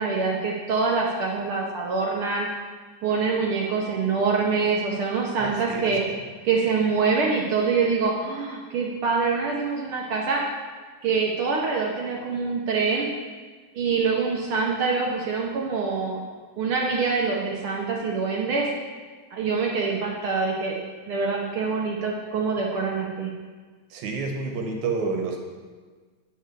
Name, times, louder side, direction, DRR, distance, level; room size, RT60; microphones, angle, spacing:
voice 1, 0.0-2.5 3.0-6.0 6.4-10.4 11.0-13.1 13.7-16.2 16.6-18.7 19.3-23.3, right 4 dB, 70° right, -2 dB, 1.3 m, -25 dB
voice 2, 5.4-5.9 23.9-25.4, right 4 dB, 85° right, 2 dB, 2.3 m, -29 dB
8.8 x 7.0 x 3.2 m, 1.5 s
omnidirectional pair, 3.3 m